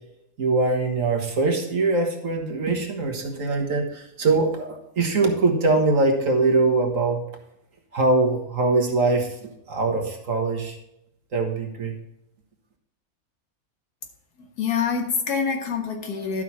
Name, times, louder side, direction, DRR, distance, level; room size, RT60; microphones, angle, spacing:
voice 1, 0.4-7.2 7.9-9.3 9.7-10.8 11.3-12.0, right 3 dB, 60° right, 3 dB, 1.8 m, -22 dB
voice 2, 14.4-16.4, left 6 dB, 80° left, 4 dB, 1.9 m, -26 dB
11.5 x 6.2 x 4.2 m, 0.81 s
omnidirectional pair, 1.6 m